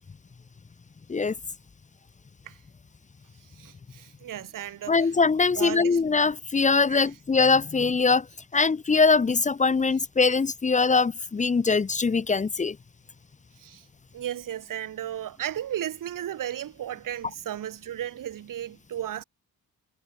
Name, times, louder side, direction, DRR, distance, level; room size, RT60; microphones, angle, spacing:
voice 1, 3.5-5.1 5.5-6.0 6.9-7.1 13.6-13.9 14.1-19.2, right 11 dB, 80° right, 3.1 m, -35 dB
voice 2, 4.9-8.3 8.5-12.8, left 4 dB, 25° left, 1.0 m, -22 dB
wide cardioid pair, 180°, 32 cm